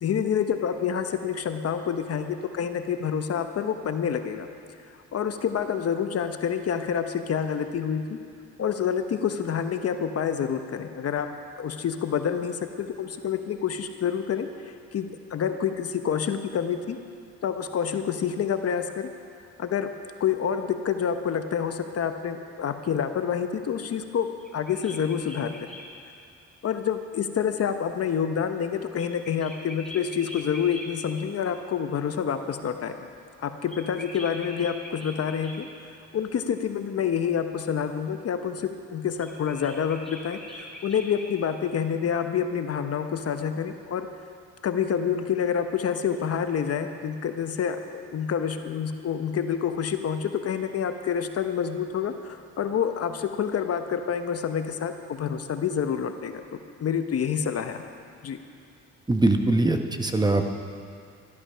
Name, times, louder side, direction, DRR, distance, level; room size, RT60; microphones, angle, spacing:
voice 1, 0.0-4.5 5.1-8.2 8.6-11.3 11.6-17.0 17.4-19.1 19.6-19.9 20.2-24.3 24.5-25.5 26.6-33.1 33.4-35.7 36.1-44.1 44.6-56.4 56.8-57.8 58.2-58.4, left 7 dB, 55° left, 8 dB, 0.9 m, -28 dB
sound 1, 24.4-25.9 28.9-30.9 33.7-35.6 39.2-41.4, left 1 dB, ahead, 3.1 m, -42 dB
voice 2, 59.1-60.4, right 2 dB, 15° right, 5 dB, 1.0 m, -22 dB
13.5 x 12.0 x 5.6 m, 2.5 s
cardioid pair, 90°, 30 cm